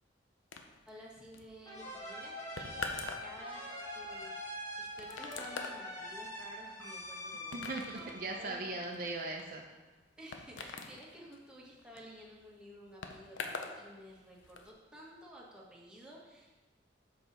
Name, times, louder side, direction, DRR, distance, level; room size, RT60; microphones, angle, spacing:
sound 1, 0.5-13.8 14.1-14.7, left 4 dB, 85° left, 0.6 m, -45 dB
voice 1, 0.8-2.8 3.2-3.6 3.9-7.6 7.9-8.7 10.2-16.5, equal, 5° right, -4 dB, 1.2 m, -53 dB
sound 2, 1.7-9.1, left 1 dB, 20° left, 1.6 m, -44 dB
voice 2, 7.5-9.6, right 2 dB, 50° right, 1 dB, 0.6 m, -39 dB
7.1 x 5.1 x 4.0 m, 1.2 s
head